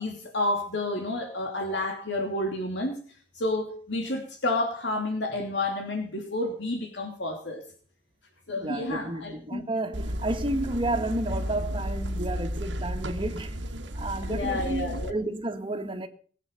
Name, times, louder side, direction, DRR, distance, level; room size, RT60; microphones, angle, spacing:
voice 1, 0.0-3.0 3.3-7.6 8.5-9.7 14.2-15.1, left 2 dB, 70° left, 2.9 m, -30 dB
voice 2, 8.6-13.7 13.9-16.1, right 1 dB, 30° right, 2.1 m, -31 dB
sound 1, 9.9-15.1, equal, 80° right, 1.8 m, -33 dB
20.5 x 8.5 x 6.8 m
head